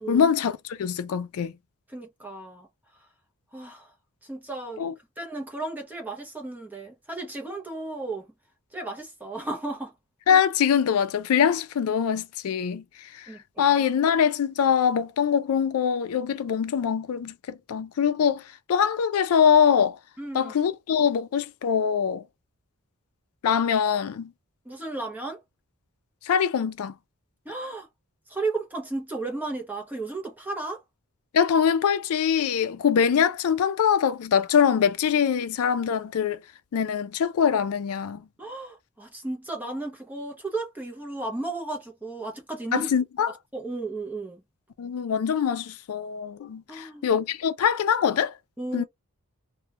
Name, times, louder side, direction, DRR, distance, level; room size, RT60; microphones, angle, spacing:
voice 1, 0.1-1.5 4.8-4.9 10.3-12.8 13.2-13.3 13.6-18.4 18.7-20.0 20.3-22.2 23.4-24.3 26.3-26.9 31.3-36.4 36.7-38.2 42.7-43.3 44.8-48.3 48.7-48.8, left 7 dB, 70° left, 0.3 m, -23 dB
voice 2, 1.9-2.7 3.5-3.9 4.2-4.8 5.2-8.3 8.7-9.9 13.3-13.8 20.2-20.5 24.6-25.4 27.5-27.9 28.3-30.8 38.4-42.9 43.3-44.4 46.7-47.0 48.6-48.8, right 2 dB, 10° right, 0.6 m, -34 dB
2.2 x 2.1 x 2.8 m
head